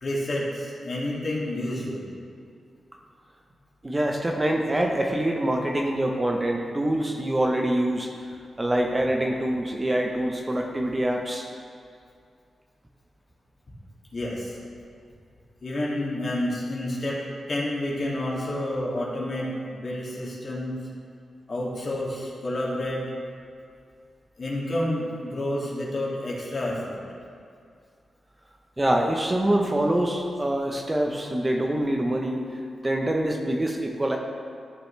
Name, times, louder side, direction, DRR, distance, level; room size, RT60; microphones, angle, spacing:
voice 1, 0.0-2.0 14.1-14.6 15.6-17.2 17.5-20.7 21.5-23.0 24.4-27.0, left 1 dB, 45° left, -5 dB, 2.2 m, -29 dB
voice 2, 3.8-8.1 8.6-11.5 28.8-32.4 32.8-34.2, right 1 dB, 20° right, 1 dB, 0.8 m, -25 dB
13.5 x 6.1 x 3.3 m, 2.3 s
cardioid pair, 85°, 0 cm